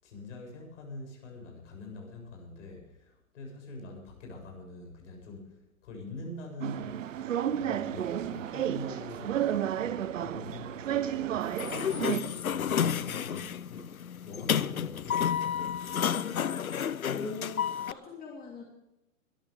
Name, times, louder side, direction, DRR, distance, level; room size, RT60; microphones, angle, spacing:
voice 1, 0.0-7.1 7.6-11.8 12.3-13.9 14.2-16.0, left 2 dB, 60° left, 2 dB, 7.6 m, -44 dB
sound 1, 6.6-12.2, right 10 dB, 65° right, 0.9 m, -32 dB
Sliding door, 11.4-17.9, left 8 dB, 90° left, 0.7 m, -31 dB
voice 2, 17.1-18.6, left 3 dB, 20° left, -1 dB, 3.2 m, -41 dB
22.0 x 14.0 x 3.5 m, 0.88 s
figure-of-eight pair, 115°, 41 cm